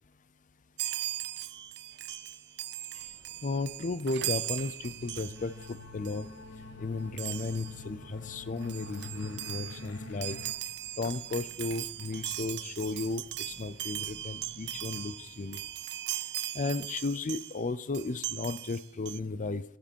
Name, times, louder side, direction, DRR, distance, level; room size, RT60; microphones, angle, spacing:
Chime, 0.8-5.7 6.0-6.3 7.2-7.8 8.3-8.4 8.6-17.6 17.9-19.2, right 14 dB, 50° right, 0.4 m, -39 dB
sound 1, 2.9-15.7, right 1 dB, 30° right, 1.9 m, -58 dB
voice 1, 3.4-6.3 6.8-10.4 11.0-15.6 16.5-19.6, left 3 dB, 35° left, 15 dB, 0.5 m, -34 dB
sound 2, 4.9-10.5, left 3 dB, 60° left, 1.2 m, -45 dB
15.0 x 7.6 x 4.6 m, 0.72 s
head